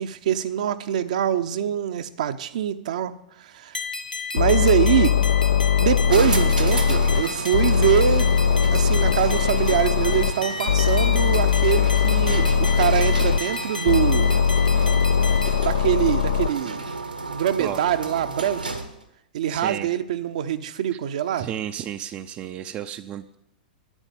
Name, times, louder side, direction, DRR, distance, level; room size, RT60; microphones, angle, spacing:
voice 1, 0.0-3.2 3.5-3.8 4.3-5.2 5.8-8.4 8.7-14.3 15.6-16.8 17.3-18.6 19.3-21.5, right 10 dB, 55° right, 10 dB, 0.8 m, -24 dB
sound 1, 3.7-15.6, left 4 dB, 80° left, 1.4 m, -33 dB
sound 2, 4.4-7.2 7.5-10.3 10.7-13.4 13.9-16.5, left 7 dB, 65° left, 0.6 m, -20 dB
sound 3, 6.1-19.0, right 3 dB, 80° right, 1.7 m, -33 dB
voice 2, 19.5-19.9 21.4-23.3, right 10 dB, 25° right, 9 dB, 0.6 m, -33 dB
11.0 x 9.7 x 8.3 m, 0.83 s
figure-of-eight pair, 100°, 5 cm